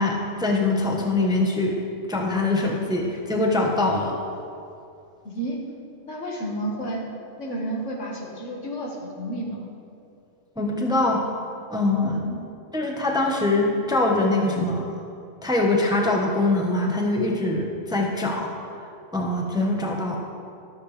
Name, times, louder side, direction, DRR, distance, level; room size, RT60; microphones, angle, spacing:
voice 1, 0.0-1.8 2.1-4.2 10.6-11.2 11.7-12.2 12.7-14.9 15.4-18.5 19.1-20.2, left 2 dB, 5° right, 0 dB, 1.0 m, -23 dB
voice 2, 5.2-5.6 6.1-7.0 7.4-9.7 12.0-12.4 14.3-14.4, right 1 dB, 70° left, -2 dB, 2.1 m, -31 dB
14.5 x 13.0 x 3.3 m, 2.5 s
omnidirectional pair, 1.3 m